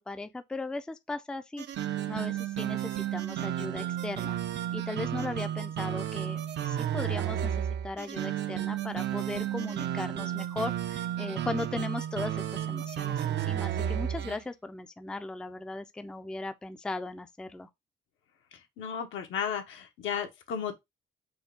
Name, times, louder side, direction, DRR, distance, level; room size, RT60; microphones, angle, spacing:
voice 1, 0.0-1.7 2.1-4.4 4.7-17.7, left 2 dB, 5° left, 0.4 m, -37 dB
sound 1, 1.6-14.4, right 11 dB, 60° right, 0.5 m, -32 dB
voice 2, 18.8-20.7, left 8 dB, 80° left, 0.9 m, -34 dB
4.4 x 2.3 x 3.4 m
cardioid pair, 90°, 20 cm